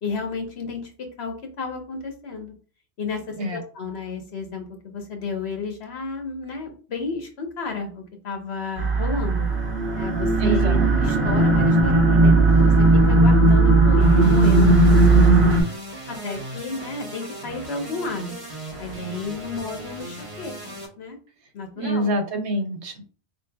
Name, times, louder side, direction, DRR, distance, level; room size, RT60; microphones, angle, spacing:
voice 1, 0.0-2.5 3.0-3.2 3.5-9.5 9.9-15.6 16.1-18.3 18.8-21.2 21.5-22.1, left 4 dB, 70° left, 4 dB, 1.1 m, -32 dB
sound 1, 8.8-15.6, right 2 dB, 55° right, 1.1 m, -16 dB
voice 2, 10.4-10.9 21.8-23.1, right 1 dB, 80° right, 5 dB, 1.1 m, -26 dB
sound 2, 14.0-20.9, right 1 dB, 30° right, 0.9 m, -38 dB
4.5 x 3.0 x 2.2 m, 0.38 s
omnidirectional pair, 1.1 m